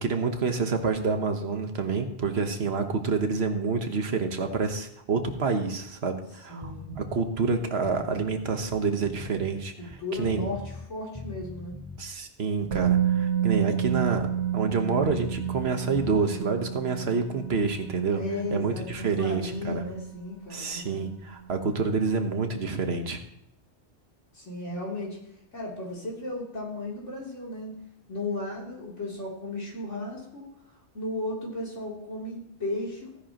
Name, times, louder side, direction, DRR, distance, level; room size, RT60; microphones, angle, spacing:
voice 1, 0.0-10.4 12.0-14.3 14.5-18.2 18.5-19.8 20.5-23.2, right 4 dB, 60° right, 6 dB, 1.4 m, -28 dB
voice 2, 6.5-7.0 9.8-10.6 10.9-11.8 18.1-21.1 24.3-25.2 25.5-27.7 28.1-30.5 30.9-33.2, left 2 dB, 90° left, -4 dB, 3.6 m, -35 dB
sound 1, 6.6-7.2 7.7-10.9 11.2-12.0 12.5-15.7 16.0-16.2, left 3 dB, 10° left, 0.3 m, -42 dB
Musical instrument, 12.7-20.6 20.9-21.1, right 10 dB, 80° right, 1.6 m, -30 dB
16.0 x 10.5 x 3.0 m, 0.74 s
omnidirectional pair, 1.2 m